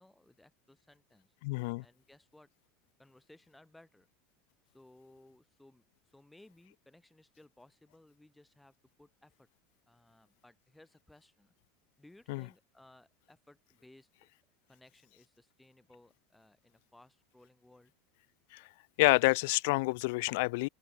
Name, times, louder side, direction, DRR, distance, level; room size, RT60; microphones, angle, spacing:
voice 1, 0.0-2.5 3.0-4.1 4.7-9.5 9.9-11.5 12.0-14.3 14.7-17.9, left 1 dB, 5° left, 6.9 m, -61 dB
voice 2, 1.4-1.8 12.3-12.4 18.5-18.6 19.0-20.7, left 25 dB, 65° left, 0.3 m, -28 dB
open air
supercardioid pair, 165°, 0 cm